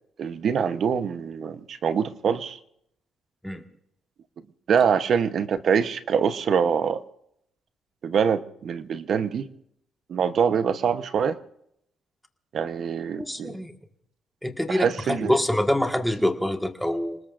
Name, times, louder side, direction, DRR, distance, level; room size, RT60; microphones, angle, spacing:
voice 1, 0.2-2.6 4.7-7.0 8.0-9.5 10.1-11.4 12.5-13.6 14.7-15.4, right 7 dB, 60° right, 1.0 m, -24 dB
voice 2, 13.2-13.7 14.4-17.2, left 1 dB, ahead, 1.7 m, -25 dB
28.0 x 19.5 x 2.6 m
cardioid pair, 90°, 0 cm